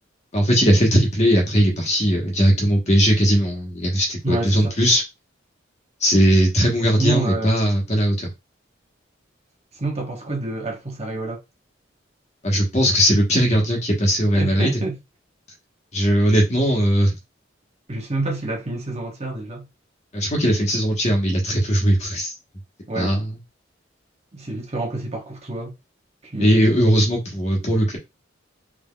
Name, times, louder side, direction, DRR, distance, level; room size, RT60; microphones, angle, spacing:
voice 1, 0.3-5.0 6.0-8.3 12.4-14.7 15.9-17.1 20.1-22.3 22.9-23.3 26.4-28.0, equal, 35° left, 1.4 m, -19 dB
voice 2, 4.2-4.7 7.0-7.5 9.8-11.4 14.3-15.0 17.9-19.7 22.9-23.2 24.3-25.7 26.2-26.6, right 2 dB, 35° right, 1.1 m, -27 dB
3.8 x 3.3 x 2.4 m
head